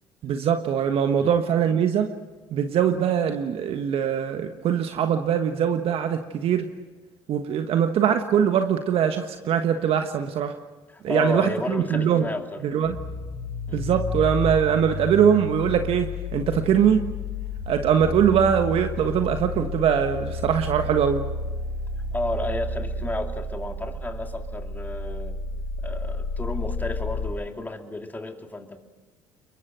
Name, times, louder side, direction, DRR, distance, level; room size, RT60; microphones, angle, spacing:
voice 1, 0.2-2.1 2.5-6.7 7.3-10.6 11.0-12.3 12.6-13.0 13.7-17.1 17.7-21.2, right 8 dB, 55° right, 7 dB, 1.4 m, -22 dB
voice 2, 10.9-12.6 13.7-13.8 22.1-25.4 25.8-28.8, left 2 dB, 15° left, 4 dB, 2.8 m, -32 dB
sound 1, 12.8-27.3, left 2 dB, 90° left, 6.0 m, -31 dB
29.0 x 22.5 x 6.3 m, 1.2 s
hypercardioid pair, 65°, 11 cm